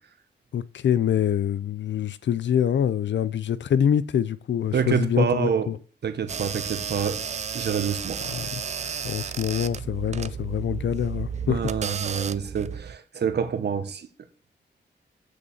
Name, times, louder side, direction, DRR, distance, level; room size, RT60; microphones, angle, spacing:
voice 1, 0.5-5.8 8.2-8.6 9.0-11.6, left 9 dB, 80° left, 0.6 m, -25 dB
voice 2, 4.7-5.7 6.0-7.2 7.5-8.2 11.5-14.1, right 7 dB, 65° right, 1.4 m, -27 dB
sound 1, 6.3-13.0, right 7 dB, 40° right, 0.4 m, -33 dB
8.4 x 6.7 x 7.2 m
wide cardioid pair, 150°, 18 cm